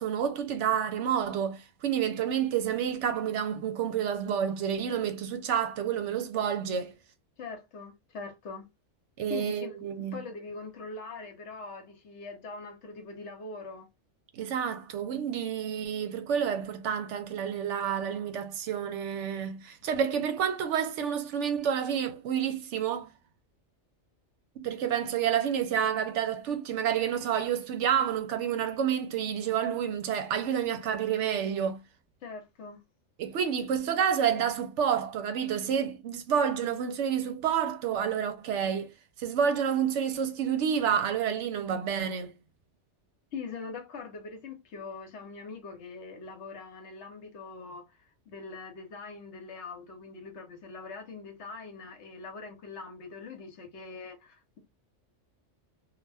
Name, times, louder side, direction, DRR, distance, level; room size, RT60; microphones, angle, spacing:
voice 1, 0.0-6.9 9.2-10.2 14.3-23.1 24.6-31.8 33.2-38.9 39.2-42.3, right 8 dB, 75° right, 0.9 m, -29 dB
voice 2, 7.4-8.7 9.3-13.9 32.2-32.8 43.3-48.0 48.3-54.6, left 4 dB, 65° left, 1.0 m, -42 dB
2.4 x 2.1 x 3.3 m
omnidirectional pair, 1.3 m